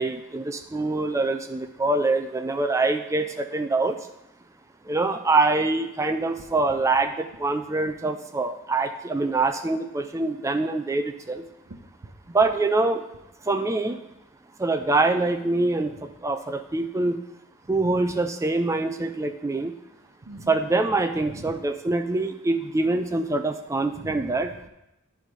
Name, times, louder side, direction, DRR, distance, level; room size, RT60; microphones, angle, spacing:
voice 1, 0.0-4.0 4.9-11.4 12.3-13.0 13.5-14.0 14.6-17.2 17.7-19.7 20.5-24.5, right 3 dB, 15° right, 7 dB, 0.3 m, -24 dB
voice 2, 12.0-12.4 17.7-18.1 20.0-20.6 21.2-21.6 24.0-24.7, right 2 dB, 55° right, -1 dB, 0.8 m, -43 dB
10.5 x 4.2 x 4.6 m, 0.89 s
head